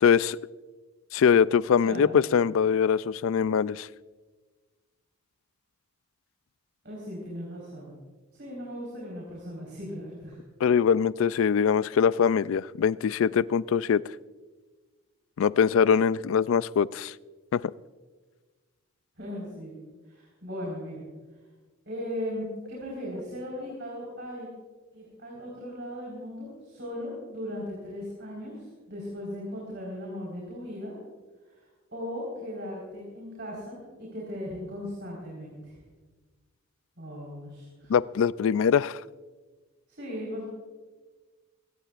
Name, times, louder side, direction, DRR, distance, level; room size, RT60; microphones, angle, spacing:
voice 1, 0.0-0.4 1.1-3.9 10.6-14.0 15.4-17.1 17.5-17.6 37.9-39.0, left 7 dB, 70° left, 19 dB, 0.3 m, -23 dB
voice 2, 1.8-2.3 6.8-8.0 8.3-10.4 19.2-19.8 20.0-21.0 21.9-24.5 24.9-31.0 31.4-35.8 37.0-37.9 39.9-40.5, equal, 55° right, -4 dB, 4.4 m, -38 dB
21.5 x 18.0 x 2.5 m, 1.3 s
head